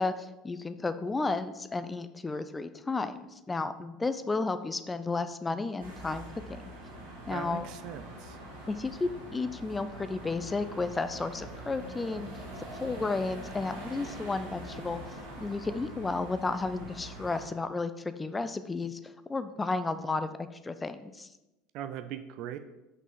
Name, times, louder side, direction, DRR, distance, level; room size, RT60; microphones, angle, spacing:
voice 1, 0.0-6.6 7.3-7.7 8.7-12.3 12.8-15.0 15.4-21.3, left 3 dB, 15° left, 11 dB, 0.5 m, -33 dB
sound 1, 5.8-17.5, right 1 dB, 75° right, 2.0 m, -44 dB
voice 2, 7.3-8.4 21.7-22.6, right 10 dB, 50° right, 10 dB, 0.6 m, -39 dB
6.1 x 5.5 x 5.8 m, 0.97 s
figure-of-eight pair, 70°, 0 cm